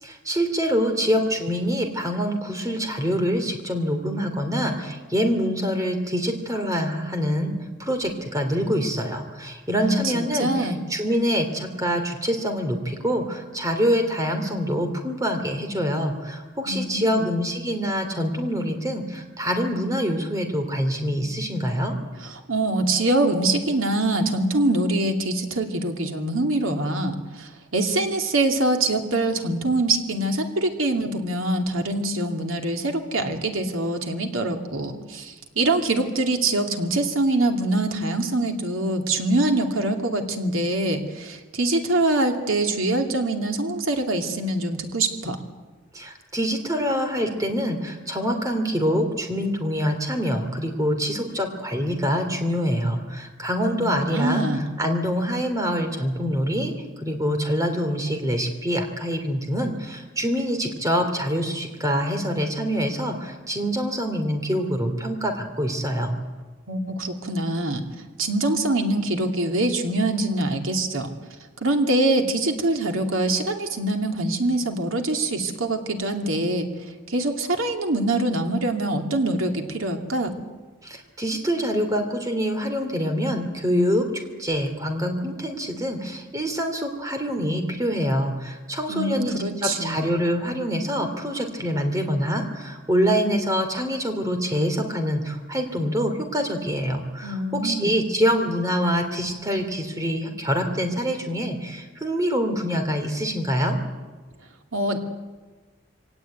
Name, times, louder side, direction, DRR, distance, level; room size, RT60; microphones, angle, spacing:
voice 1, 0.0-7.5 7.8-22.0 45.9-54.5 54.8-66.2 80.8-103.8, equal, 15° right, 6 dB, 2.9 m, -25 dB
voice 2, 9.8-10.8 16.6-17.3 22.2-45.4 53.8-54.7 66.7-67.8 68.2-71.1 71.6-76.7 77.1-80.3 88.9-90.1 97.2-98.0 104.7-105.0, right 2 dB, 85° right, 4 dB, 2.7 m, -24 dB
23.5 x 17.5 x 9.3 m, 1.3 s
head